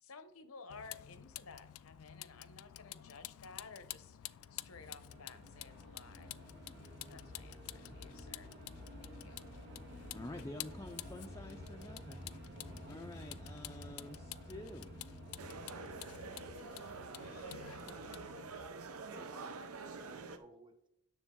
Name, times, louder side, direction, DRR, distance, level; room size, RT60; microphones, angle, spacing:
voice 1, 0.0-6.4 7.1-8.5 9.0-9.5, left 4 dB, 75° left, 11 dB, 0.8 m, -55 dB
Vehicle, 0.7-18.7, left 14 dB, 90° left, 0.3 m, -51 dB
sound 1, 4.0-18.4, equal, 55° right, 2.0 m, -52 dB
voice 2, 10.1-12.3 12.9-14.9, left 1 dB, 15° left, 3 dB, 0.4 m, -48 dB
sound 2, 15.4-20.4, right 4 dB, 85° right, 0.8 m, -47 dB
voice 3, 17.8-18.2 19.0-20.9, right 2 dB, 20° right, 7 dB, 0.9 m, -60 dB
9.8 x 7.0 x 3.7 m, 0.81 s
head